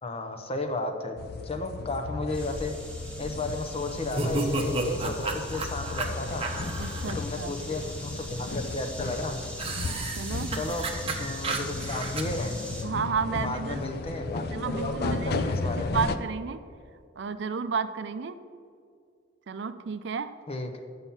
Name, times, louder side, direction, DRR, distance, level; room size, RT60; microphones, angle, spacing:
voice 1, 0.0-1.2 1.4-2.7 3.2-6.5 7.0-9.4 10.5-10.9 11.2-12.6 13.3-16.1 20.5-20.8, left 2 dB, 30° left, 6 dB, 0.8 m, -33 dB
sound 1, 1.2-16.2, left 3 dB, 55° left, 0.4 m, -35 dB
sound 2, 2.3-12.8, equal, 5° left, 1.3 m, -42 dB
sound 3, 4.1-7.1 9.6-12.2, right 3 dB, 30° right, 0.8 m, -32 dB
voice 2, 6.8-7.5 10.2-10.5 12.8-13.8 14.5-15.5 15.9-16.6 17.2-18.4 19.5-20.3, right 5 dB, 65° right, 11 dB, 0.5 m, -31 dB
8.9 x 5.6 x 5.6 m, 2.3 s
head